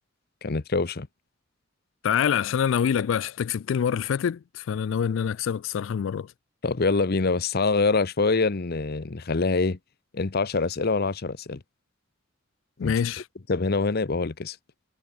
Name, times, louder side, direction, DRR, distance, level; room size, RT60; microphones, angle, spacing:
voice 1, 0.4-1.1 6.6-9.8 10.1-11.6 12.8-12.9 13.5-14.6, left 3 dB, 50° left, 0.8 m, -25 dB
voice 2, 2.0-6.3 12.8-13.2, left 8 dB, 65° left, 0.3 m, -25 dB
head